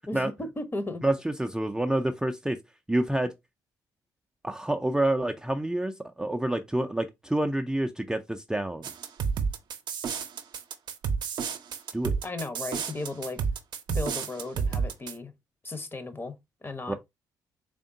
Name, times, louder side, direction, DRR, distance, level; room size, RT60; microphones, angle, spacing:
voice 1, 0.1-1.0 12.2-13.4 13.9-15.3 15.6-16.4 16.6-16.9, left 2 dB, 25° left, 0.9 m, -35 dB
voice 2, 1.0-2.6 2.9-3.3 4.4-8.8 11.9-12.1 16.9-17.0, right 1 dB, 5° right, 0.5 m, -28 dB
sound 1, 8.8-15.1, right 6 dB, 55° right, 0.6 m, -30 dB
3.6 x 3.4 x 2.6 m
hypercardioid pair, 50°, 9 cm